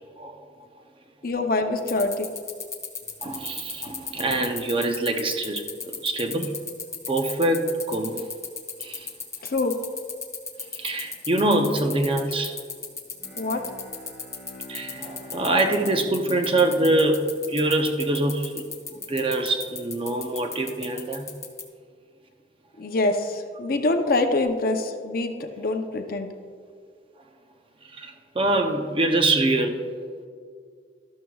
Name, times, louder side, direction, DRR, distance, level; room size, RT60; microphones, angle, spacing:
voice 1, 0.2-0.5 3.2-6.6 7.1-8.3 8.8-9.1 10.7-12.6 14.7-21.3 27.8-29.9, right 2 dB, 30° right, 5 dB, 0.6 m, -25 dB
voice 2, 1.2-2.3 9.4-9.7 13.4-13.6 22.8-26.3, left 2 dB, 50° left, 5 dB, 0.7 m, -25 dB
sound 1, 1.8-21.6, left 5 dB, 15° left, 0.9 m, -34 dB
Bowed string instrument, 13.1-18.0, left 1 dB, 5° right, 2.8 m, -46 dB
12.5 x 12.0 x 2.4 m, 2.1 s
head